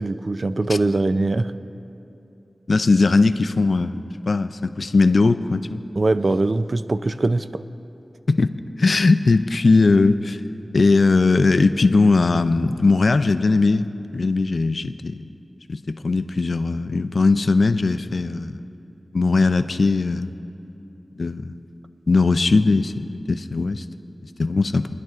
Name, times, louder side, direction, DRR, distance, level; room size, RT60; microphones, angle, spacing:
voice 1, 0.0-1.5 6.0-7.6, right 2 dB, 60° right, 11 dB, 0.4 m, -22 dB
voice 2, 2.7-4.0 4.3-5.8 8.3-10.4 10.7-15.2 15.7-18.6 19.1-20.3 21.2-21.5 22.1-23.8 24.4-24.9, left 3 dB, 70° left, 10 dB, 0.4 m, -19 dB
24.5 x 10.5 x 2.5 m, 2.8 s
wide cardioid pair, 70°, 0 cm